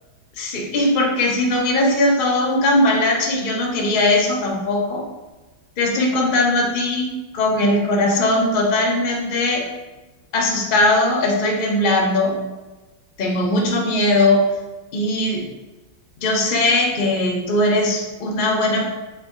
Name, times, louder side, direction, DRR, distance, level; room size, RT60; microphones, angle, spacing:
voice 1, 0.4-5.0 5.8-7.1 7.3-9.6 10.3-12.3 13.2-14.4 14.9-15.4 16.2-18.9, left 1 dB, 70° left, -1 dB, 0.4 m, -19 dB
3.6 x 3.0 x 3.6 m, 1.2 s
omnidirectional pair, 2.0 m